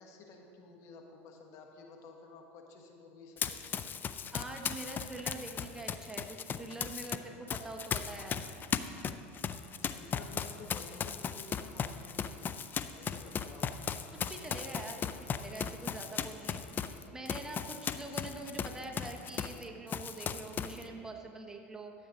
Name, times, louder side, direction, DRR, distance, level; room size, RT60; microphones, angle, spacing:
voice 1, 0.0-4.0 9.8-12.5 12.8-13.8, left 3 dB, 55° left, 2 dB, 1.4 m, -52 dB
Run, 3.4-7.2 7.5-19.6 19.9-20.8, left 7 dB, 30° left, 0.4 m, -37 dB
voice 2, 4.3-8.4 14.1-21.9, right 2 dB, 10° right, 2 dB, 1.1 m, -44 dB
12.5 x 7.9 x 3.9 m, 2.6 s
hypercardioid pair, 95°, 6 cm